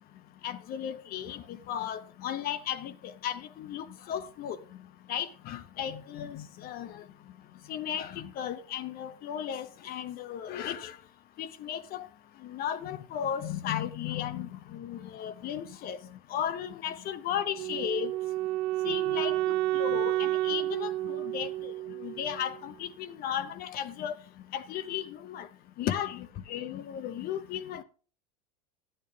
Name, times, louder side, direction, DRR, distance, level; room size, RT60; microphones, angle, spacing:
voice 1, 0.4-4.6 5.1-7.0 7.7-11.0 11.4-12.1 12.4-16.0 16.3-18.1 18.8-21.7 22.0-24.1 24.5-25.5 25.8-27.8, left 9 dB, 45° left, 0.8 m, -35 dB
Wind instrument woodwind instrument, 17.5-22.6, right 15 dB, 55° right, 0.4 m, -30 dB
10.5 x 8.9 x 3.4 m
hypercardioid pair, 90°, 21 cm